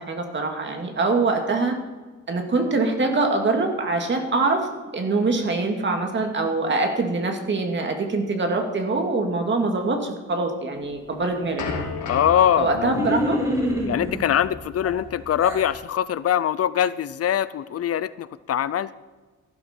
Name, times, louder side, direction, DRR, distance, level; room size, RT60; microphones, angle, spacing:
voice 1, 0.0-1.8 2.3-4.7 4.9-11.6 12.6-13.4, right 3 dB, 40° right, 3 dB, 2.2 m, -24 dB
sound 1, 10.8-15.8, left 4 dB, 85° left, 2.8 m, -35 dB
voice 2, 12.0-13.1 13.9-19.0, left 10 dB, 55° left, 17 dB, 0.5 m, -23 dB
sound 2, 12.9-14.2 14.8-15.7, equal, 10° right, 5.0 m, -26 dB
15.0 x 12.0 x 4.4 m, 1.3 s
cardioid pair, 120°, 29 cm